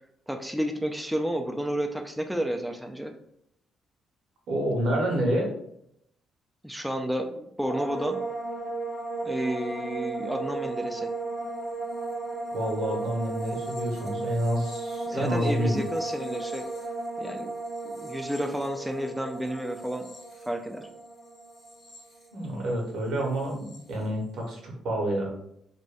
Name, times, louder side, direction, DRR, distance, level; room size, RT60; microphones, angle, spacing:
voice 1, 0.3-3.1 6.6-8.2 9.2-11.1 15.1-16.6 17.2-17.5 17.8-20.1 20.4-20.9, equal, ahead, 3 dB, 0.3 m, -31 dB
voice 2, 4.5-5.5 12.5-15.8 22.3-25.3, right 1 dB, 75° right, 0 dB, 1.0 m, -28 dB
sound 1, 7.6-22.9 23.1-23.8, right 3 dB, 55° left, 1.0 m, -35 dB
2.6 x 2.2 x 3.3 m, 0.74 s
cardioid pair, 90°, 0 cm